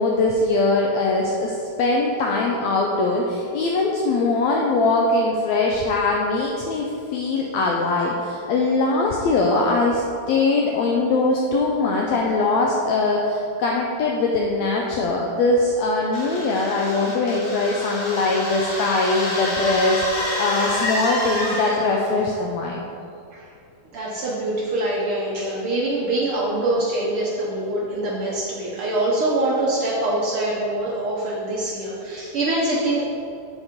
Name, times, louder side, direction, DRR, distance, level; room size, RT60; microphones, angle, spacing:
voice 1, 0.0-22.8, left 3 dB, 85° left, -1 dB, 1.5 m, -21 dB
sound 1, 16.1-22.0, left 1 dB, 55° left, 2.6 m, -28 dB
voice 2, 23.9-33.0, right 1 dB, 85° right, -5 dB, 1.2 m, -24 dB
8.4 x 4.7 x 5.1 m, 2.5 s
omnidirectional pair, 3.9 m